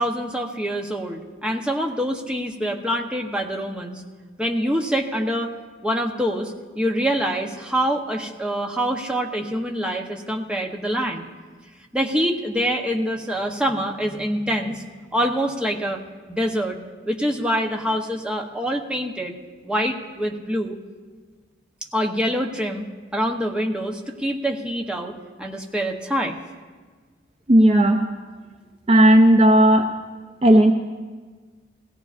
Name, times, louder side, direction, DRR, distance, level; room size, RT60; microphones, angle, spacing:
voice 1, 0.0-4.0 4.4-5.5 5.8-11.3 11.9-14.9 15.1-16.0 16.3-16.8 17.1-19.4 19.6-20.8 21.9-22.9 23.1-25.1 25.4-26.4, equal, 5° right, 0 dB, 0.8 m, -25 dB
voice 2, 27.5-28.1 28.9-29.9 30.4-30.7, right 1 dB, 30° right, 4 dB, 0.5 m, -14 dB
17.5 x 16.0 x 2.5 m, 1.4 s
head